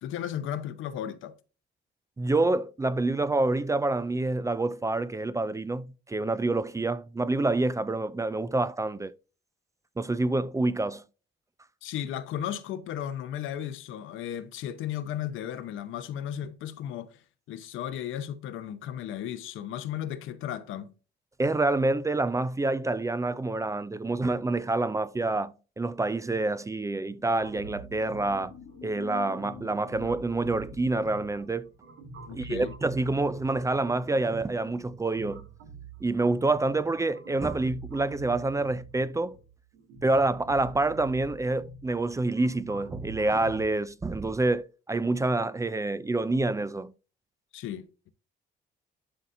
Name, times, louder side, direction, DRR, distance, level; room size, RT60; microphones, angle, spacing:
voice 1, 0.0-1.3 11.8-20.9 32.3-32.7 47.5-48.1, left 10 dB, 85° left, 0.8 m, -35 dB
voice 2, 2.2-9.1 10.0-11.0 21.4-28.5 28.8-31.7 32.3-35.5 36.0-39.4 40.0-46.9, right 2 dB, 15° right, 0.4 m, -27 dB
sound 1, 26.1-31.2, left 9 dB, 45° left, 0.5 m, -49 dB
sound 2, 27.4-43.6, right 4 dB, 85° right, 1.8 m, -46 dB
11.5 x 4.1 x 2.6 m
cardioid pair, 90°, 20 cm